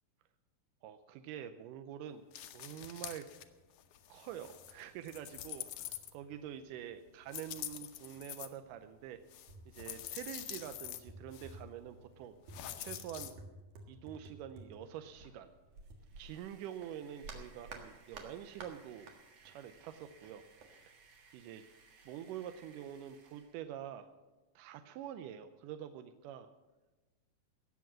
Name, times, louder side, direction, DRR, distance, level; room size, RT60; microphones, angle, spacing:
voice 1, 0.8-3.3 4.1-9.2 9.7-12.3 12.8-13.3 13.9-15.5 16.2-19.1 19.4-20.4 20.8-21.6 22.1-24.1 24.6-26.5, right 10 dB, 90° right, 9 dB, 2.2 m, -46 dB
sound 1, 2.3-3.5 3.8-6.5 7.3-8.5 9.3-11.0 11.3-11.6 12.5-13.3, left 12 dB, 75° left, 2.3 m, -46 dB
sound 2, 8.6-8.8 9.0-16.4 16.8-19.2 19.5-20.7, right 3 dB, 70° right, 3.1 m, -53 dB
sound 3, 15.9-23.7, right 4 dB, 55° right, 2.7 m, -63 dB
18.0 x 7.1 x 7.5 m, 1.2 s
omnidirectional pair, 3.7 m